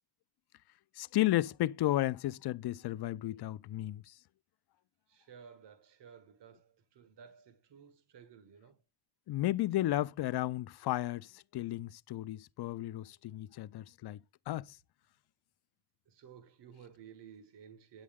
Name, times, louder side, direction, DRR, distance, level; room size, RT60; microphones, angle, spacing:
voice 1, 1.0-4.2 9.3-14.8, left 15 dB, 65° left, 0.5 m, -33 dB
voice 2, 5.1-8.8 16.1-18.0, right 7 dB, 75° right, 1.6 m, -55 dB
9.8 x 8.3 x 3.6 m
wide cardioid pair, 130°, 42 cm